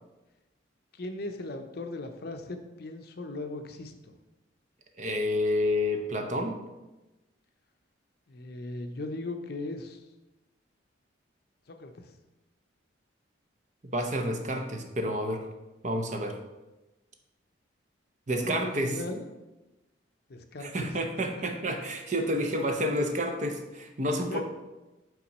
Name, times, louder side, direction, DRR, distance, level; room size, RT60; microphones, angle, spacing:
voice 1, 0.9-4.1 8.3-10.0 11.7-12.1 18.4-19.2 20.3-20.9 24.3-24.4, left 2 dB, 50° left, 6 dB, 0.6 m, -38 dB
voice 2, 5.0-6.6 13.8-15.4 15.8-16.4 18.3-19.0 20.6-24.4, equal, 35° right, 5 dB, 0.6 m, -29 dB
5.7 x 3.7 x 5.2 m, 1.0 s
head